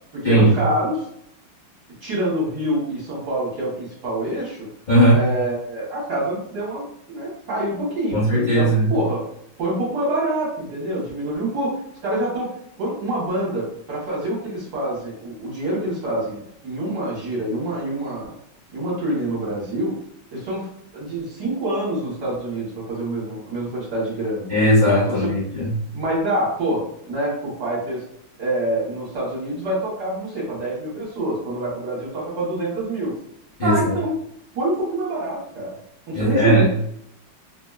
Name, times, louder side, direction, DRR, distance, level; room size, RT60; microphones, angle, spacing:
voice 1, 0.1-1.0 2.0-4.7 5.1-9.2 9.6-11.8 12.0-12.5 12.8-18.3 18.7-19.9 20.3-24.5 25.1-25.3 25.9-28.0 28.4-33.1 33.6-34.2 34.5-35.8 36.1-36.6, right 1 dB, 55° right, -6 dB, 1.5 m, -26 dB
voice 2, 4.9-5.2 8.1-8.9 24.5-25.7 33.6-33.9 36.1-36.6, right 1 dB, 45° left, -10 dB, 0.5 m, -17 dB
3.4 x 2.2 x 2.3 m, 0.72 s
omnidirectional pair, 2.4 m